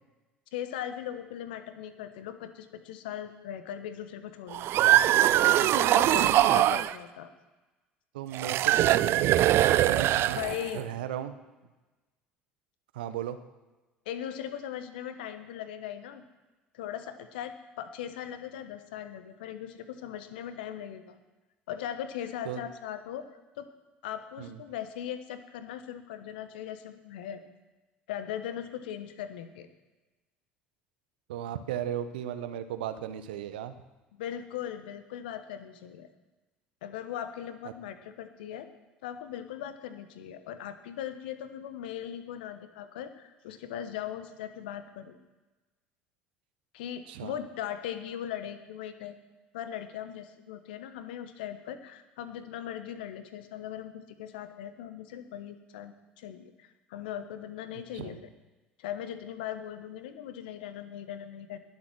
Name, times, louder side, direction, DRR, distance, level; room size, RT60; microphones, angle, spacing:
voice 1, 0.5-4.9 5.6-7.3 10.3-10.9 14.0-16.2 16.7-21.2 21.7-23.3 23.6-23.7 24.0-27.4 28.1-29.7 34.1-36.1 36.8-38.7 39.0-45.2 46.7-49.2 49.5-58.2 58.8-61.6, left 10 dB, 70° left, 10 dB, 1.2 m, -39 dB
sound 1, 4.5-6.9 8.3-10.8, right 13 dB, 50° right, 0.5 m, -22 dB
voice 2, 8.1-10.4 10.7-11.3 12.9-13.4 22.4-22.6 24.4-24.6 31.3-33.7 37.6-37.7 47.1-47.3 57.9-58.2, right 10 dB, 70° right, 10 dB, 1.0 m, -35 dB
20.5 x 7.6 x 6.2 m, 1.2 s
figure-of-eight pair, 65°, 5 cm